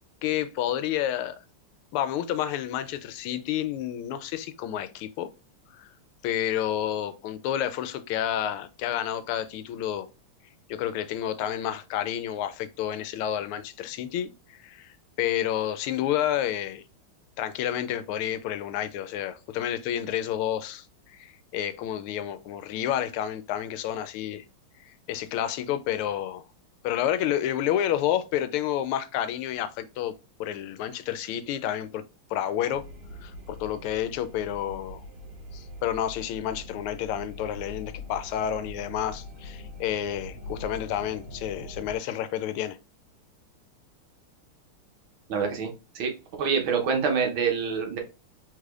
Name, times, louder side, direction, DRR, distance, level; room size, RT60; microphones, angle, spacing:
voice 1, 0.2-1.4 1.9-5.3 5.7-5.9 6.2-10.1 10.7-16.8 17.4-24.4 24.9-26.4 26.8-30.1 30.4-32.0 32.3-32.8 33.2-35.0 35.5-42.8, left 11 dB, 85° left, 1.5 m, -30 dB
sound 1, 32.7-42.0, left 2 dB, 40° right, 2.7 m, -43 dB
voice 2, 45.3-45.7 46.0-46.1 46.4-48.0, right 6 dB, 70° right, 1.7 m, -26 dB
4.9 x 4.0 x 2.4 m
omnidirectional pair, 2.3 m